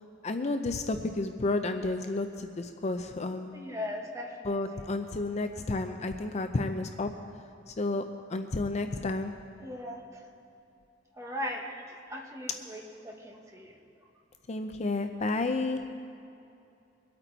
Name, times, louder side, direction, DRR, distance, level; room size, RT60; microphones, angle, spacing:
voice 1, 0.2-3.6 4.4-7.1 7.7-8.0 8.3-9.3 14.5-15.8, left 2 dB, 35° left, 7 dB, 0.5 m, -31 dB
voice 2, 3.5-4.9 9.6-10.2 11.2-13.7, left 1 dB, 15° right, 0 dB, 1.4 m, -39 dB
23.0 x 8.7 x 4.0 m, 2.6 s
head